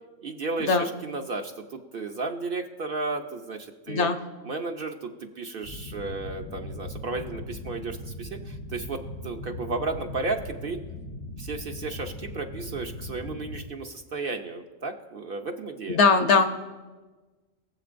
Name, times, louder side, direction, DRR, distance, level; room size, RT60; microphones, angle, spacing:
voice 1, 0.2-4.1 4.5-10.8 11.4-16.0, right 3 dB, 55° right, 4 dB, 0.7 m, -33 dB
voice 2, 3.9-4.2 15.9-16.5, left 4 dB, 65° left, 7 dB, 1.0 m, -20 dB
sound 1, 5.6-13.7, left 1 dB, 80° left, 1.9 m, -39 dB
22.0 x 7.5 x 2.5 m, 1.3 s
omnidirectional pair, 1.4 m